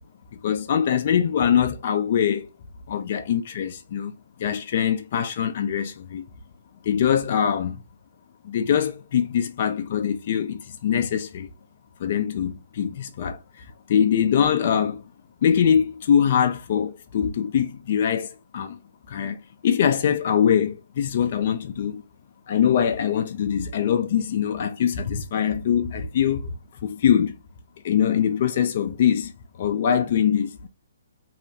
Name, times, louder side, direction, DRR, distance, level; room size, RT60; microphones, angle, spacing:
voice 1, 0.3-2.5 2.9-4.1 4.4-6.2 6.8-7.8 8.4-11.5 12.0-15.0 15.4-18.8 19.1-19.4 19.6-22.0 22.5-26.5 26.8-27.3 27.8-29.3 29.6-30.7, left 8 dB, 45° left, 0.3 m, -23 dB
2.8 x 2.1 x 2.6 m
figure-of-eight pair, 130°, 0 cm